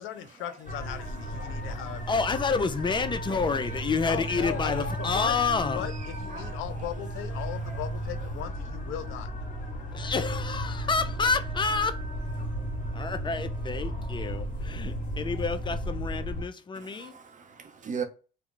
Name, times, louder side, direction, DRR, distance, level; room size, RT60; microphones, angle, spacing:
voice 1, 0.0-2.4 4.0-4.7 5.0-5.3 5.7-9.3, left 10 dB, 90° left, 0.4 m, -38 dB
sound 1, 0.7-16.4, equal, 40° left, 1.0 m, -34 dB
voice 2, 1.4-1.8 4.4-4.5 6.3-6.6 7.7-7.8 16.8-18.0, right 6 dB, 40° right, 0.7 m, -39 dB
voice 3, 2.1-5.9 9.9-12.0 12.9-17.1, left 4 dB, 25° left, 0.4 m, -29 dB
2.3 x 2.1 x 3.7 m
cardioid pair, 90°, 20 cm